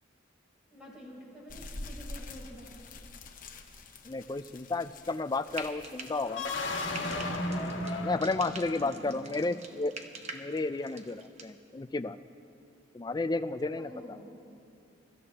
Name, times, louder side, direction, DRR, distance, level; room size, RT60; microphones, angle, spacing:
voice 1, 0.7-2.9 8.8-9.6 13.7-14.4, equal, 5° right, -6 dB, 4.5 m, -48 dB
sound 1, 1.5-6.5, left 2 dB, 45° left, 1.0 m, -46 dB
voice 2, 4.1-6.5 8.0-9.9 10.3-12.2 12.9-13.9, left 3 dB, 20° left, 11 dB, 0.4 m, -32 dB
Frying (food), 5.5-11.5, right 3 dB, 35° right, 0.9 m, -46 dB
sound 2, 6.2-9.2, left 2 dB, 85° left, 1.4 m, -34 dB
28.0 x 14.5 x 2.9 m, 2.6 s
head